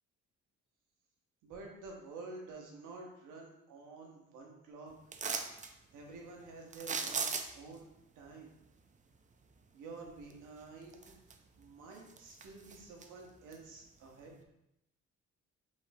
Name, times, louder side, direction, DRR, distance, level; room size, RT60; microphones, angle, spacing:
voice 1, 1.4-4.9 5.9-7.9 8.2-8.5 9.7-11.2 11.6-14.3, right 3 dB, 90° right, 0 dB, 1.0 m, -50 dB
sound 1, 5.1-5.7 6.7-7.7 10.3-10.4 10.9-11.6 11.9-13.1 13.5-13.6, right 5 dB, 25° right, 0.4 m, -37 dB
5.2 x 3.2 x 2.7 m, 0.85 s
cardioid pair, 90°, 30 cm